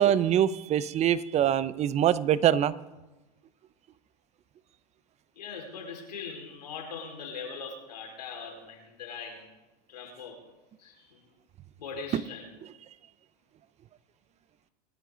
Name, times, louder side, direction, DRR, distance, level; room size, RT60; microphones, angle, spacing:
voice 1, 0.0-2.7 12.1-12.2, right 10 dB, 30° right, 17 dB, 0.7 m, -24 dB
voice 2, 5.3-9.5 9.9-10.4 10.8-11.2 11.8-12.5, left 5 dB, 90° left, 0 dB, 4.9 m, -41 dB
26.0 x 10.5 x 4.0 m, 1.1 s
hypercardioid pair, 105°, 21 cm